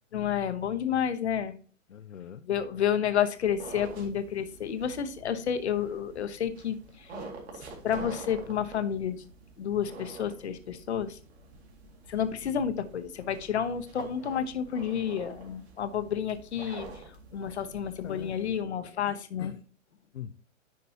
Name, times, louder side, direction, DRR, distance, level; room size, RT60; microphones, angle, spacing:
voice 1, 0.1-1.5 2.4-7.2 7.8-9.3 9.6-11.2 12.1-17.0 17.3-19.5, left 8 dB, 55° left, 11 dB, 1.0 m, -30 dB
voice 2, 1.9-2.4 12.4-12.5 18.0-18.5 19.1-19.6 20.1-20.3, left 8 dB, 70° left, 8 dB, 0.6 m, -43 dB
sound 1, 3.4-18.6, right 3 dB, 55° right, 2.3 m, -47 dB
10.0 x 5.1 x 2.8 m, 0.41 s
figure-of-eight pair, 115°, 39 cm